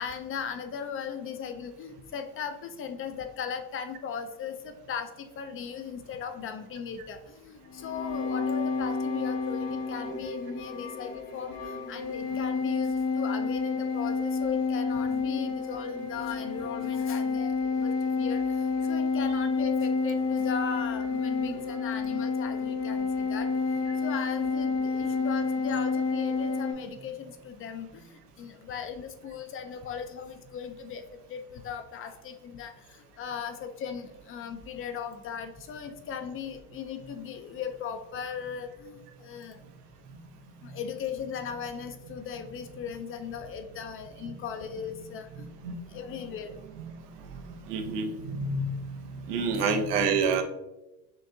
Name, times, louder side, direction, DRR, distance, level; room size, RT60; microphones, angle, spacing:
voice 1, 0.0-17.5 17.8-18.4 18.9-23.5 24.0-27.9 28.4-31.0 31.3-39.6 40.6-45.5 45.9-46.6 49.4-49.5, left 7 dB, 30° left, 7 dB, 0.4 m, -38 dB
sound 1, 7.7-26.7, left 4 dB, 90° left, 1.4 m, -29 dB
voice 2, 47.3-49.0 49.3-50.4, right 4 dB, 90° right, 5 dB, 0.7 m, -28 dB
6.4 x 2.6 x 2.6 m, 0.94 s
hypercardioid pair, 90°, 45 cm